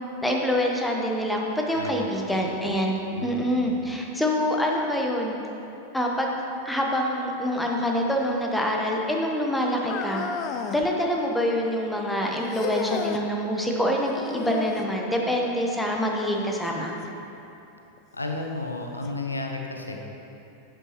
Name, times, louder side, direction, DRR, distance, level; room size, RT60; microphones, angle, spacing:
voice 1, 0.2-2.9 3.2-5.4 5.9-6.4 6.6-10.3 10.7-16.9, equal, 5° left, 0 dB, 1.0 m, -26 dB
voice 2, 1.7-2.7 3.1-3.8 18.1-20.0, left 2 dB, 80° left, 2 dB, 0.7 m, -33 dB
sound 1, 9.8-10.9 12.5-13.3 14.3-15.0 17.0-17.1 18.0-18.1 19.0-19.1, left 7 dB, 35° left, 0.5 m, -32 dB
11.0 x 7.9 x 3.1 m, 2.9 s
figure-of-eight pair, 90°, 0 cm